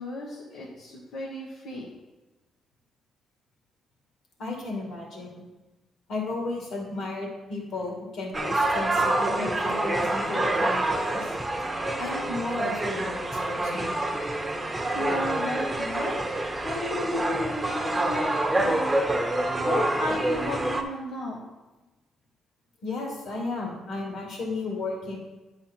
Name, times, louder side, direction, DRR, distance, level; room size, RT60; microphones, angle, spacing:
voice 1, 0.0-1.9 14.4-16.2 16.6-18.3 18.6-21.4, left 1 dB, 90° left, -6 dB, 1.3 m, -34 dB
voice 2, 4.4-5.4 6.1-11.3 12.0-13.9 22.8-25.2, left 3 dB, 70° left, -1 dB, 2.3 m, -34 dB
sound 1, 8.3-20.8, right 2 dB, 15° right, 0.9 m, -27 dB
8.9 x 4.9 x 4.4 m, 1.1 s
cardioid pair, 90°, 0 cm